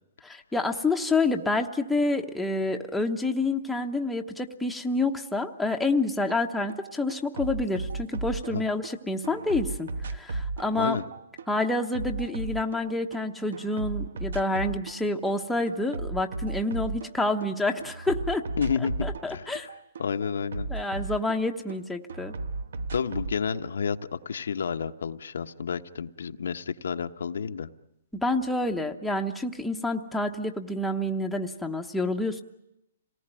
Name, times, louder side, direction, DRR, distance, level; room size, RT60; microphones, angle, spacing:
voice 1, 0.2-11.0 11.5-18.5 19.0-19.7 20.7-22.3 28.1-32.4, left 2 dB, ahead, 2 dB, 1.0 m, -28 dB
sound 1, 6.3-6.4 6.7-8.9 9.2-13.2 13.5-15.0 15.3-17.5 17.8-21.8 22.1-23.4, right 3 dB, 80° right, 1.2 m, -35 dB
voice 2, 18.6-19.7 20.0-20.7 22.9-27.7, left 6 dB, 85° left, 7 dB, 1.1 m, -30 dB
27.0 x 19.0 x 9.0 m, 0.84 s
hypercardioid pair, 160°, 0 cm